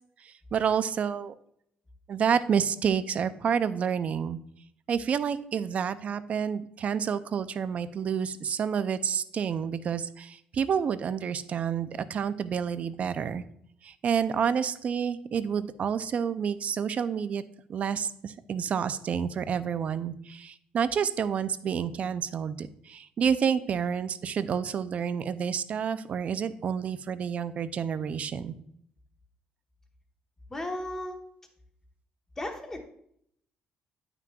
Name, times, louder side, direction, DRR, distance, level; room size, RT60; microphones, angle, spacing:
voice 1, 0.2-1.3 2.1-4.4 4.9-13.4 13.8-17.4 17.7-28.5, right 7 dB, 45° right, 13 dB, 0.4 m, -29 dB
voice 2, 30.5-31.2 32.4-32.8, left 1 dB, 15° left, 3 dB, 1.1 m, -34 dB
9.1 x 5.9 x 2.3 m, 0.70 s
cardioid pair, 115°, 3 cm